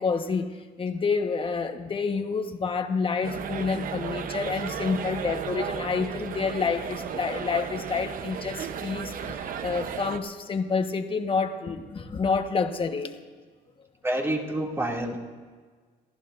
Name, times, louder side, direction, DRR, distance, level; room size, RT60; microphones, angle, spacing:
voice 1, 0.0-13.1, left 5 dB, 30° left, 6 dB, 1.3 m, -28 dB
sound 1, 3.2-10.2, right 7 dB, 55° right, 0.9 m, -34 dB
voice 2, 14.0-15.2, right 1 dB, 15° right, -1 dB, 2.5 m, -28 dB
28.5 x 14.5 x 2.6 m, 1.5 s
cardioid pair, 110°, 17 cm